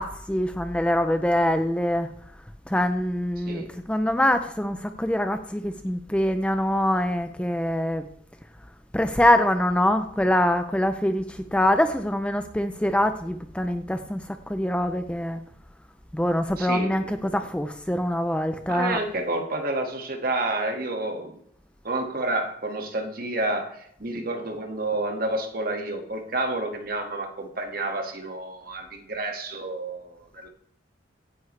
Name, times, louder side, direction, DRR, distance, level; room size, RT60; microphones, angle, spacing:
voice 1, 0.0-2.1 2.7-8.0 8.9-14.2 14.5-15.4 16.1-19.0, left 1 dB, 5° left, 0.5 m, -24 dB
voice 2, 3.4-3.7 16.6-17.4 18.7-21.4 21.8-30.5, right 2 dB, 50° right, 2.0 m, -30 dB
16.5 x 9.7 x 3.3 m
head